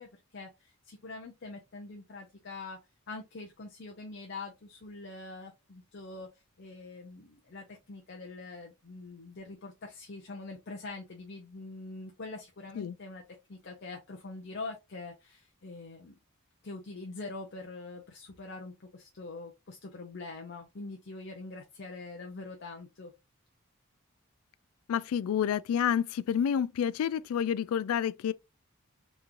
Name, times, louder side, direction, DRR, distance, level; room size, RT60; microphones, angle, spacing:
voice 1, 0.0-2.8 3.1-6.3 6.6-13.2 13.5-16.2 16.6-23.1, left 3 dB, 50° left, 0.7 m, -44 dB
voice 2, 24.9-28.3, left 8 dB, 75° left, 0.3 m, -29 dB
3.6 x 3.1 x 2.5 m
head